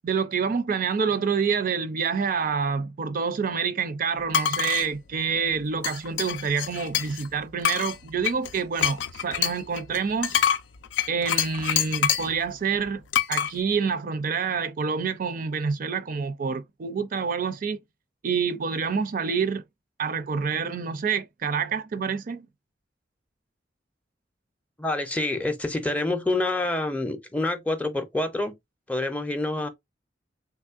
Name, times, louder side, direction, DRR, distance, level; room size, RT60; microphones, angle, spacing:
voice 1, 0.0-10.4 11.1-13.0 13.3-17.8 18.2-19.6 20.0-22.5, right 5 dB, 50° right, 0.4 m, -27 dB
sound 1, 4.3-4.9 5.8-7.3 7.6-12.4 13.1-13.5, left 9 dB, 85° left, 0.4 m, -26 dB
voice 2, 24.8-28.5 28.9-29.7, left 2 dB, 10° left, 0.5 m, -27 dB
3.4 x 3.1 x 2.4 m
head